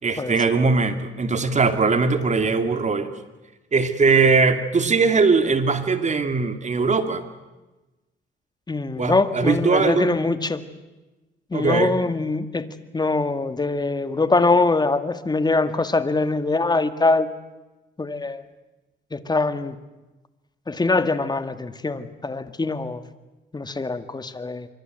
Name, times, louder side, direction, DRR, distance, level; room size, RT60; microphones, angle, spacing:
voice 1, 0.0-3.1 3.7-7.3 9.0-10.1 11.5-12.0, right 4 dB, 35° right, 9 dB, 2.6 m, -20 dB
voice 2, 8.7-10.6 11.5-12.7 12.9-17.3 18.0-18.4 19.1-19.8 20.7-23.0 23.5-24.7, left 3 dB, 20° left, 11 dB, 1.9 m, -23 dB
25.5 x 24.0 x 8.0 m, 1.1 s
cardioid pair, 90°, 20 cm